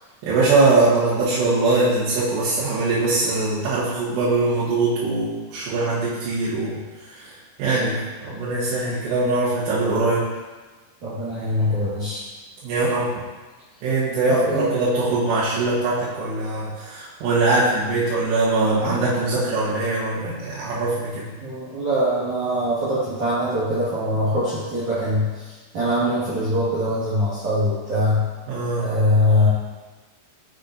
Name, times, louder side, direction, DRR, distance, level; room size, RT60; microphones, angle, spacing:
voice 1, 0.2-6.8 7.6-10.3 12.6-13.1 13.8-21.3 28.5-28.9, right 3 dB, 80° right, -11 dB, 3.6 m, -22 dB
voice 2, 11.0-12.2 14.3-14.7 21.4-28.2 28.8-29.5, left 1 dB, 55° right, -12 dB, 2.6 m, -22 dB
8.3 x 6.6 x 2.6 m, 1.3 s
omnidirectional pair, 5.0 m